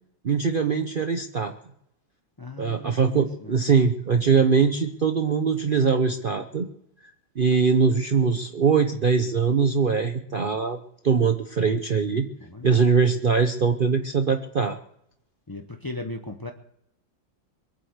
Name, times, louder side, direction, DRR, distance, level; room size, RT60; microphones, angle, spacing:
voice 1, 0.2-1.5 2.6-6.7 7.4-10.8 11.0-12.3 12.6-14.8, right 5 dB, 85° right, 6 dB, 0.4 m, -22 dB
voice 2, 2.4-3.6 12.4-12.8 15.5-16.5, left 2 dB, 35° left, 5 dB, 0.3 m, -37 dB
22.5 x 8.0 x 8.1 m, 0.77 s
omnidirectional pair, 2.1 m